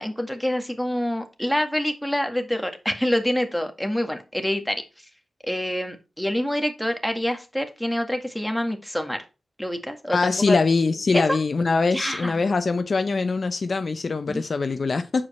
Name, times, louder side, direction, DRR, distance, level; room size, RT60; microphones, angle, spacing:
voice 1, 0.0-4.8 5.4-9.2 9.6-10.6 11.1-11.4 11.9-12.3 14.3-14.4, equal, 5° left, 1.8 m, -26 dB
voice 2, 10.1-15.3, left 4 dB, 60° left, 0.6 m, -23 dB
7.3 x 4.9 x 4.3 m
cardioid pair, 40°, 0 cm